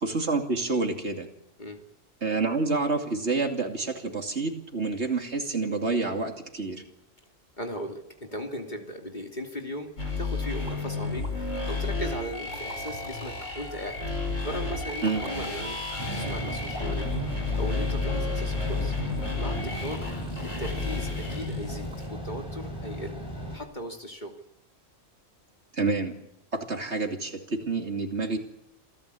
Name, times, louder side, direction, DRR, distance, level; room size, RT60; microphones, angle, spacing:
voice 1, 0.0-1.3 2.2-6.8 15.0-15.2 25.7-26.1 26.5-28.4, right 3 dB, 60° right, 4 dB, 2.9 m, -28 dB
voice 2, 7.6-9.9 10.2-14.0 14.4-15.8 16.1-17.1 17.6-18.9 19.4-20.0 20.6-23.2 23.5-24.3, equal, 35° left, 3 dB, 2.9 m, -37 dB
sound 1, 10.0-22.1, left 3 dB, 75° left, 6.0 m, -32 dB
sound 2, 10.7-10.8 11.2-11.3 12.2-13.3 14.5-15.5 16.7-17.1 17.5-17.7 18.0-18.3 18.6-18.7, equal, 85° right, 4.6 m, -44 dB
sound 3, 16.0-23.6, equal, 20° left, 4.4 m, -36 dB
27.5 x 15.5 x 8.5 m, 0.84 s
omnidirectional pair, 1.3 m